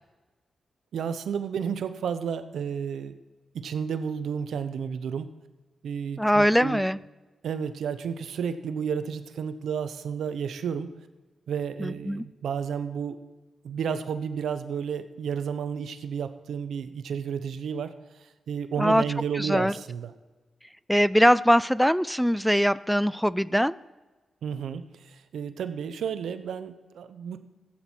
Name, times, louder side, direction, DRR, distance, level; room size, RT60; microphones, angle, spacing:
voice 1, 0.9-3.2 3.5-5.3 5.8-6.8 7.4-10.9 11.5-13.2 13.6-17.9 18.5-20.1 24.4-24.9 25.3-27.4, right 7 dB, 85° right, 11 dB, 0.7 m, -31 dB
voice 2, 6.2-7.0 11.8-12.2 18.8-19.0 19.3-19.8 20.9-23.8, equal, ahead, 19 dB, 0.3 m, -22 dB
14.5 x 8.9 x 4.5 m, 1.2 s
cardioid pair, 60°, 0 cm